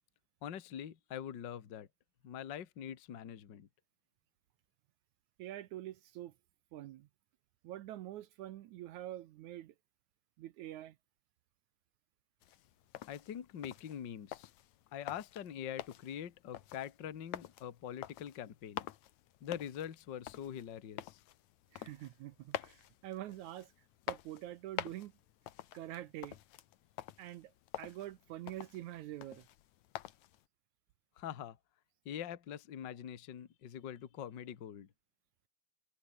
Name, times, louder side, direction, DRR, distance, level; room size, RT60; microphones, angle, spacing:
voice 1, 0.4-1.9 2.2-3.7 13.1-14.5 14.9-18.9 19.4-21.2 31.2-31.6 32.0-34.9, left 9 dB, 45° left, 1.5 m, -44 dB
voice 2, 5.4-6.3 6.7-7.1 7.6-9.7 10.4-11.0 21.7-23.7 24.1-25.1 25.7-26.4 27.2-27.5 27.8-29.5, right 14 dB, 75° right, 1.8 m, -45 dB
sound 1, 12.4-30.4, left 13 dB, 65° left, 1.9 m, -48 dB
omnidirectional pair, 4.3 m